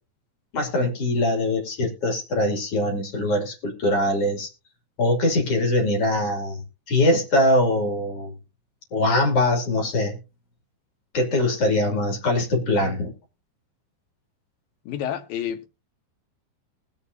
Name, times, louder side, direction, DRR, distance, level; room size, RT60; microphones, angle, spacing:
voice 1, 0.5-4.5 5.0-8.4 8.9-10.2 11.1-13.1, left 1 dB, 40° left, 2.8 m, -22 dB
voice 2, 14.9-15.7, left 10 dB, 80° left, 2.0 m, -29 dB
20.5 x 7.3 x 2.7 m
omnidirectional pair, 5.1 m